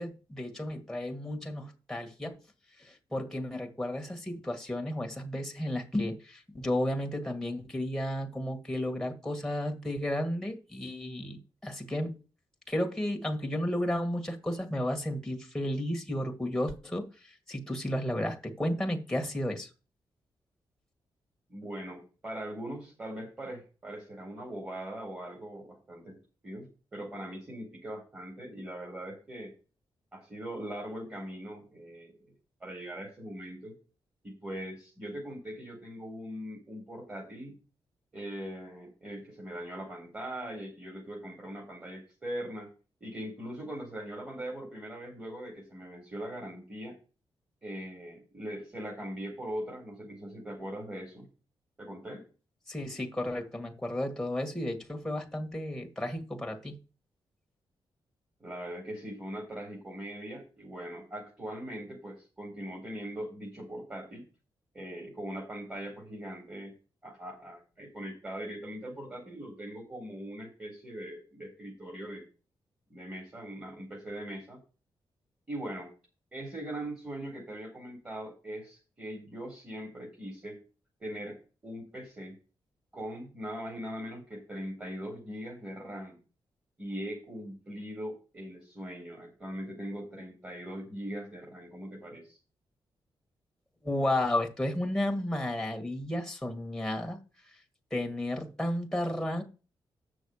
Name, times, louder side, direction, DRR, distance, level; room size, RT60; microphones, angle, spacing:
voice 1, 0.0-2.4 2.8-12.2 12.7-19.7 52.7-56.8 93.8-97.2 97.9-99.4, left 1 dB, 5° left, 1.7 m, -33 dB
voice 2, 21.5-26.2 26.4-29.5 30.1-32.1 32.6-33.7 34.2-37.6 38.1-42.7 43.0-47.0 47.6-51.3 51.8-52.2 58.4-64.2 64.7-66.7 67.0-72.2 72.9-74.6 75.5-75.9 76.3-80.6 81.0-82.4 82.9-86.2 86.8-92.4, right 1 dB, 25° right, 4.0 m, -41 dB
7.9 x 6.3 x 6.4 m
wide cardioid pair, 135°, 9 cm